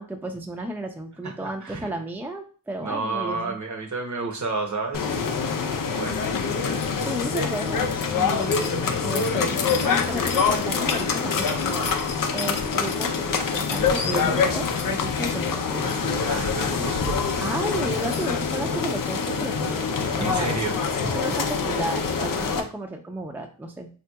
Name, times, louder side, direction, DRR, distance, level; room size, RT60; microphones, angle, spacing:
voice 1, 0.0-3.6 6.9-11.9 12.3-16.0 17.4-20.5 21.0-23.9, right 1 dB, 5° right, 3 dB, 0.5 m, -33 dB
voice 2, 1.2-1.9 2.8-5.1 5.7-6.4 15.8-17.3 20.2-20.8, right 3 dB, 55° right, 3 dB, 0.8 m, -31 dB
sound 1, 4.9-22.6, left 5 dB, 70° left, 0.5 m, -25 dB
3.4 x 2.9 x 2.2 m, 0.38 s
cardioid pair, 50°, 34 cm